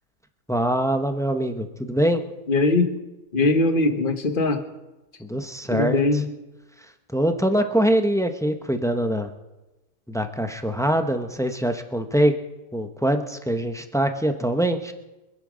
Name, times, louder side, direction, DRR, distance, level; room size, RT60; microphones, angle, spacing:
voice 1, 0.5-2.2 5.2-6.0 7.1-9.3 10.1-12.4 12.7-14.9, right 1 dB, 5° left, 6 dB, 0.6 m, -23 dB
voice 2, 2.5-2.9 3.3-4.6 5.7-6.3, left 2 dB, 35° left, 7 dB, 1.3 m, -21 dB
25.5 x 9.1 x 5.1 m, 1.0 s
omnidirectional pair, 1.7 m